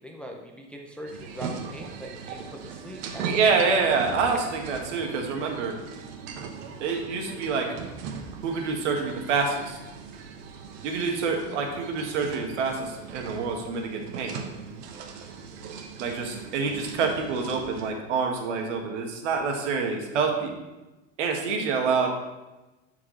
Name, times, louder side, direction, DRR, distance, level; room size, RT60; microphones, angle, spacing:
voice 1, 0.0-3.4, equal, 5° left, 1 dB, 0.4 m, -41 dB
sound 1, 1.1-17.9, right 5 dB, 65° right, 1.1 m, -39 dB
voice 2, 3.2-5.8 6.8-7.7 8.4-9.8 10.8-14.4 16.0-20.5 21.2-22.1, right 5 dB, 85° right, 2 dB, 1.5 m, -27 dB
11.5 x 4.7 x 3.2 m, 1.1 s
supercardioid pair, 145°, 35 cm